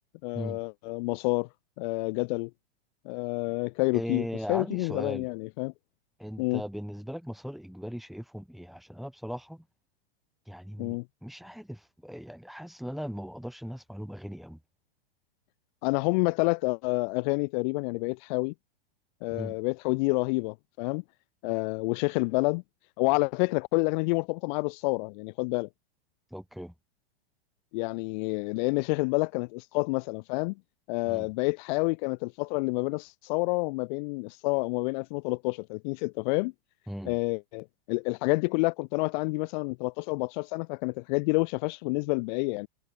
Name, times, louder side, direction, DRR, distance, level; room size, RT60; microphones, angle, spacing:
voice 1, 0.2-1.5 1.8-2.5 3.1-5.7 6.4-6.6 10.8-11.0 15.8-18.5 19.2-21.0 21.4-22.6 23.0-25.7 27.7-30.5 30.9-36.5 37.1-42.7, left 28 dB, 50° left, 2.0 m, -28 dB
voice 2, 3.9-5.3 6.2-9.6 10.5-14.6 19.3-19.6 26.3-26.7 31.1-31.3 36.9-37.2, equal, ahead, 4.2 m, -38 dB
hypercardioid pair, 130°, 30 cm